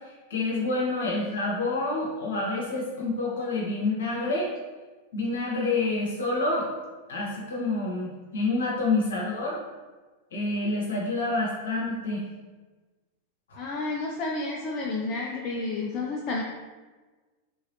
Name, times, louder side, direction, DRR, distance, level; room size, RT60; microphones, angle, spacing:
voice 1, 0.3-4.5 5.1-6.7 7.1-9.6 10.3-12.2, left 2 dB, 65° left, -4 dB, 1.0 m, -28 dB
voice 2, 13.6-16.4, left 3 dB, 35° left, -2 dB, 0.4 m, -30 dB
3.5 x 3.1 x 2.7 m, 1.3 s
figure-of-eight pair, 90°, 0 cm